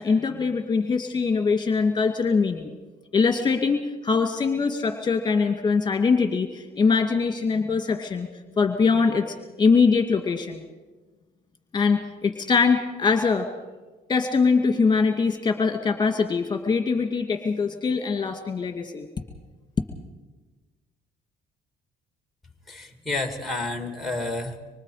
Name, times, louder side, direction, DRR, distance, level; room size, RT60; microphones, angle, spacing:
voice 1, 0.0-2.7 3.1-8.3 8.6-10.6 11.7-13.5 14.1-19.1, left 5 dB, 25° left, 5 dB, 2.3 m, -22 dB
voice 2, 22.7-24.6, left 2 dB, ahead, 6 dB, 2.5 m, -30 dB
25.0 x 25.0 x 5.0 m, 1.3 s
cardioid pair, 110°, 17 cm